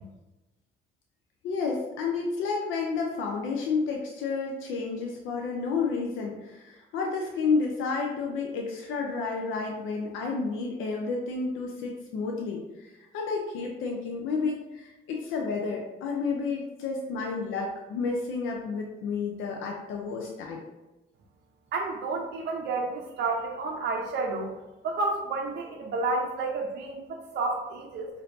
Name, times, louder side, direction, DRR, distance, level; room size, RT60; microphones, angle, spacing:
voice 1, 1.4-20.6, left 4 dB, 90° left, 0 dB, 0.5 m, -31 dB
voice 2, 21.7-24.5 24.8-28.1, right 3 dB, 60° right, 0 dB, 0.5 m, -30 dB
4.3 x 2.6 x 2.6 m, 1.0 s
cardioid pair, 90°, 20 cm